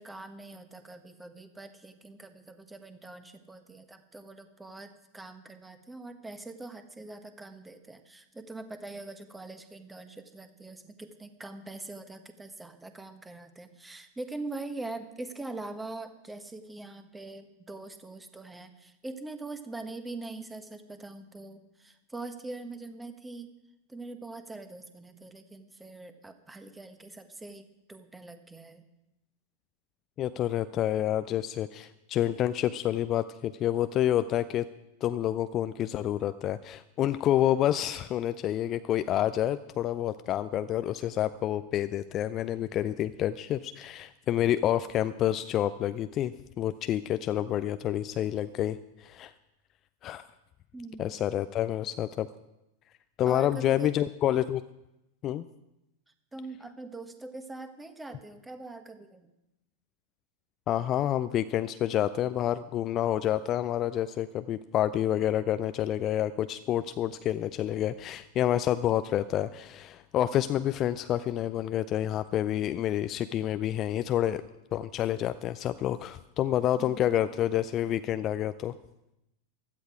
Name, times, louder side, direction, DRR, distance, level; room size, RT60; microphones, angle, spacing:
voice 1, 0.0-23.5 23.9-28.8 50.7-51.2 53.3-53.9 56.3-59.3 76.8-77.1, right 2 dB, 10° right, 9 dB, 1.3 m, -43 dB
voice 2, 30.2-34.7 35.0-49.3 50.0-50.3 51.0-52.3 53.2-54.6 55.2-55.4 60.7-74.4 74.7-78.7, left 11 dB, 30° left, 12 dB, 0.4 m, -28 dB
16.0 x 12.0 x 4.8 m, 0.91 s
figure-of-eight pair, 90°, 0 cm